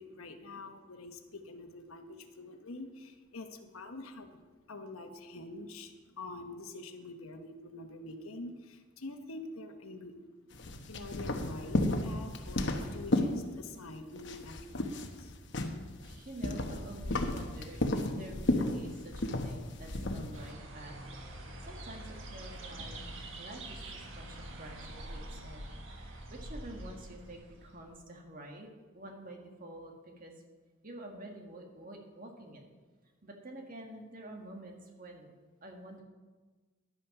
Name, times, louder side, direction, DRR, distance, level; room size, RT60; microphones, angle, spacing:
voice 1, 0.0-4.4 4.7-10.1 10.9-15.3, left 2 dB, 85° left, 6 dB, 1.2 m, -46 dB
sound 1, 10.5-13.9 14.2-20.5, left 1 dB, 55° left, 1.0 m, -33 dB
voice 2, 16.0-23.0 23.4-30.4 30.8-32.6 33.0-35.3 35.6-36.0, right 1 dB, 40° right, 2 dB, 1.8 m, -48 dB
sound 2, 20.3-28.0, right 1 dB, 65° right, 1.6 m, -45 dB
11.5 x 8.9 x 5.9 m, 1.3 s
head